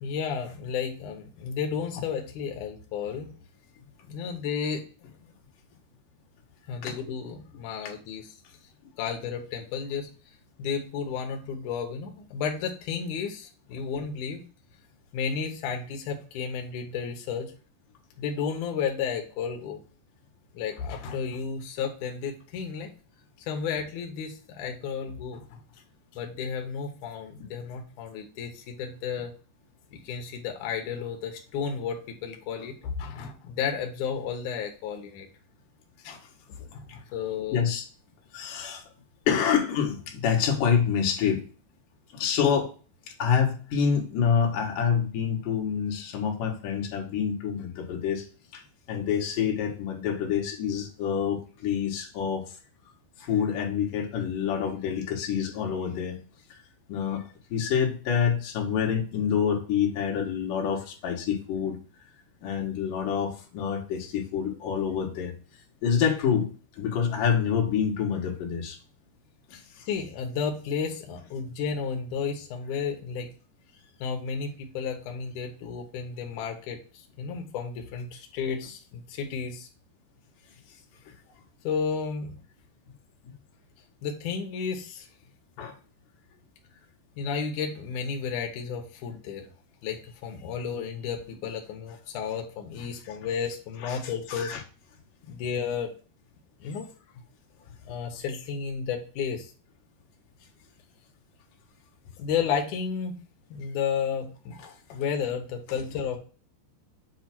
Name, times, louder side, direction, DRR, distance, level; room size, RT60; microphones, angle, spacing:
voice 1, 0.0-3.3 4.1-4.8 6.7-8.3 9.0-10.1 10.6-14.4 15.1-17.5 18.2-19.8 20.5-22.9 23.5-25.6 26.1-29.3 29.9-35.3 36.7-37.7 69.5-69.6 69.9-73.3 74.0-79.7 81.6-82.4 84.0-85.1 85.6-85.7 87.2-89.5 89.8-94.5 95.3-95.9 96.6-96.9 97.8-99.5 102.2-103.2 103.5-104.6 104.9-106.2, left 6 dB, 85° left, 2 dB, 1.8 m, -32 dB
voice 2, 37.5-37.8 38.3-38.8 39.3-41.4 42.1-42.7 43.2-48.3 48.5-48.6 48.9-52.5 53.2-56.2 56.9-57.2 57.5-61.8 62.4-65.3 65.8-66.5 66.8-68.8 69.5-69.9 83.2-83.3 85.6-85.7 92.8-92.9 93.8-94.0 94.3-94.6 104.6-104.7, left 7 dB, 60° left, 0 dB, 2.5 m, -27 dB
8.3 x 2.8 x 5.9 m, 0.38 s
omnidirectional pair, 5.2 m